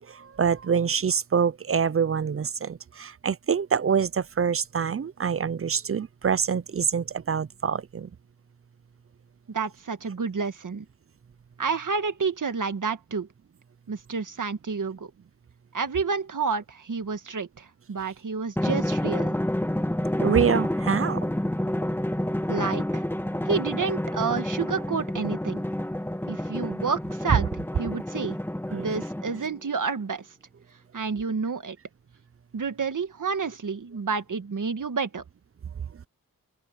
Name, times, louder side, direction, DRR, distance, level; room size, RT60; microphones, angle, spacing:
voice 1, 0.0-8.1 20.2-21.3 28.7-28.9, right 7 dB, 40° right, 0.6 m, -25 dB
voice 2, 9.5-10.9 11.6-13.3 13.9-15.1 15.7-19.4 22.5-23.0 23.5-25.6 26.3-27.5 27.8-28.4 28.7-30.3 30.9-31.8 32.5-35.2, right 5 dB, 60° right, 1.7 m, -29 dB
Drum, 18.6-29.6, left 1 dB, 5° left, 1.6 m, -29 dB
open air
wide cardioid pair, 85°, 35 cm